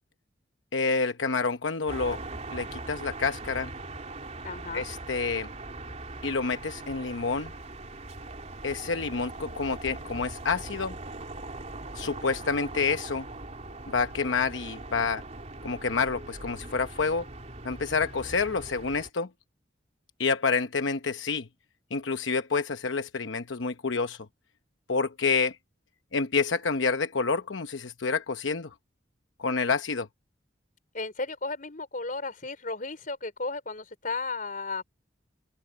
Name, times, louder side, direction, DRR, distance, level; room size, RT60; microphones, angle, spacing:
voice 1, 0.7-2.2 2.5-3.7 4.7-5.5 6.2-7.5 8.6-10.9 11.9-13.3 13.9-15.2 15.6-17.3 17.6-19.3 20.2-21.5 21.9-24.3 24.9-25.6 26.1-28.7 29.4-30.1, left 4 dB, 90° left, 0.9 m, -28 dB
sound 1, 1.9-19.1, right 2 dB, 40° right, 3.4 m, -41 dB
voice 2, 4.4-4.9 30.9-34.8, left 3 dB, 45° left, 4.7 m, -34 dB
head